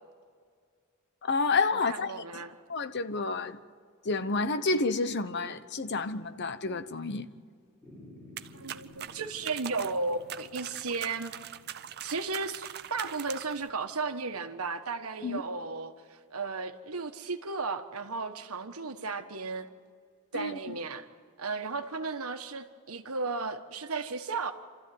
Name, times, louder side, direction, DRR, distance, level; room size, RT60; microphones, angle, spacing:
voice 1, 1.2-2.1 2.7-3.6 4.0-7.3 15.2-15.4 20.3-20.6, left 3 dB, 50° left, 0.9 m, -29 dB
voice 2, 1.7-2.6 8.5-11.3 12.0-19.7 20.3-21.0 21.4-24.5, right 4 dB, 85° right, 1.4 m, -35 dB
sound 1, 7.8-14.3, left 2 dB, 10° left, 6.6 m, -55 dB
sound 2, 8.4-13.7, right 10 dB, 50° right, 0.6 m, -42 dB
28.5 x 14.0 x 9.4 m
head